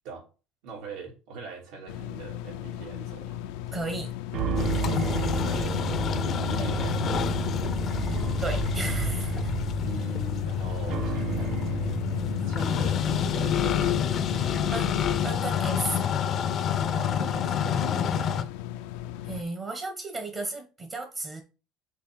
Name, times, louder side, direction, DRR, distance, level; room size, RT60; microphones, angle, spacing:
voice 1, 0.6-3.4 5.3-7.4 9.8-11.6 12.4-14.3 16.9-18.7, right 4 dB, 80° right, 3.1 m, -42 dB
sound 1, 1.9-19.4, left 12 dB, 85° left, 0.5 m, -37 dB
voice 2, 3.7-4.2 4.7-5.6 8.4-9.4 14.7-15.0 15.2-16.1 19.2-21.4, right 2 dB, 30° right, 1.0 m, -35 dB
sound 2, 4.3-15.7, right 6 dB, 55° right, 1.1 m, -33 dB
sound 3, 4.6-18.4, left 8 dB, 40° left, 0.6 m, -28 dB
6.7 x 4.1 x 3.8 m
cardioid pair, 150°, 0 cm